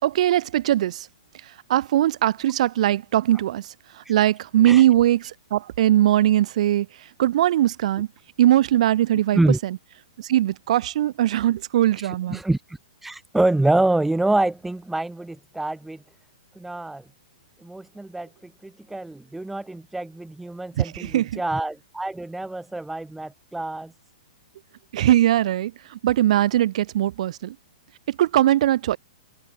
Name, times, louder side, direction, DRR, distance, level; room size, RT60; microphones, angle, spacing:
voice 1, 0.0-1.1 1.7-3.7 4.0-6.9 7.2-8.1 8.4-9.8 10.2-12.4 20.8-21.4 24.9-27.6 28.1-29.0, right 13 dB, 60° right, 2.5 m, -20 dB
voice 2, 12.3-16.0 16.6-17.0 17.6-18.3 18.6-23.9, right 2 dB, 5° right, 1.0 m, -26 dB
hypercardioid pair, 145°, 4 cm